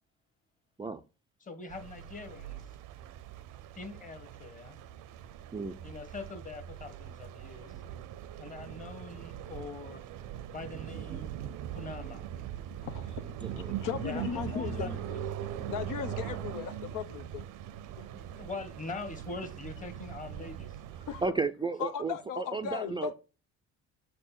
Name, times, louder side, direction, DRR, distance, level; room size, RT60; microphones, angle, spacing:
voice 1, 1.4-2.6 3.7-4.8 5.8-7.8 8.4-10.0 10.5-11.3 11.7-12.2 14.0-15.2 18.1-20.8, left 3 dB, 25° left, 1.2 m, -43 dB
sound 1, 1.7-21.3, right 10 dB, 80° right, 0.6 m, -41 dB
voice 2, 12.7-15.1 15.6-17.4 18.0-18.4 21.1-21.2 21.8-23.1, left 7 dB, 85° left, 1.0 m, -37 dB
voice 3, 13.4-13.7 21.2-23.1, right 4 dB, 15° right, 0.3 m, -33 dB
6.5 x 4.4 x 5.7 m
cardioid pair, 115°, 31 cm